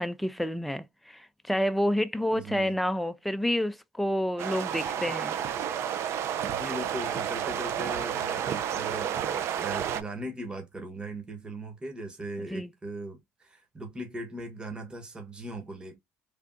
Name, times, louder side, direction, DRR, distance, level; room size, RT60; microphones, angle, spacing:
voice 1, 0.0-5.3 12.5-12.7, equal, ahead, 0.4 m, -29 dB
voice 2, 2.3-2.8 6.5-16.0, right 1 dB, 15° right, 1.1 m, -39 dB
sound 1, 4.4-10.0, right 9 dB, 60° right, 0.4 m, -31 dB
3.4 x 2.5 x 2.5 m
supercardioid pair, 75°, 5 cm